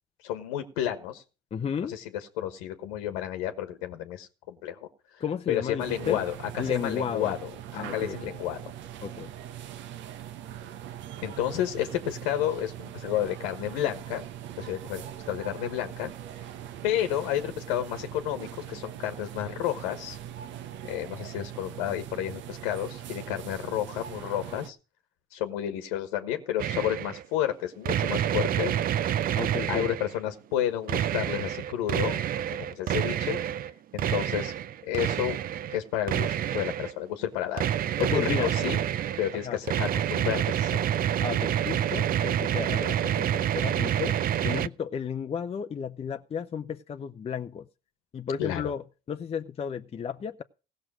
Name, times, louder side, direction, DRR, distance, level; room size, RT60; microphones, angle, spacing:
voice 1, 0.2-1.2 1.9-2.0 2.4-4.9 5.5-7.4 7.7-8.6 11.2-14.2 14.6-16.1 16.8-20.2 20.8-24.8 25.3-28.8 29.7-32.2 32.6-34.5 34.8-35.4 35.7-37.7 38.0-38.8 39.2-40.9 48.4-48.7, left 11 dB, 85° left, 1.3 m, -31 dB
voice 2, 1.5-2.0 5.2-6.2 6.6-7.3 7.7-8.3 9.0-9.3 29.4-29.9 38.0-38.5 39.3-39.6 41.2-47.7 48.1-50.4, left 7 dB, 30° left, 0.6 m, -33 dB
sound 1, 5.8-24.7, right 11 dB, 65° right, 0.9 m, -41 dB
sound 2, 26.6-27.2 27.9-30.2 30.9-33.7 34.0-35.8 36.1-36.9 37.6-44.7, right 10 dB, 45° right, 0.5 m, -28 dB
16.5 x 6.2 x 6.2 m
supercardioid pair, 80°, 21 cm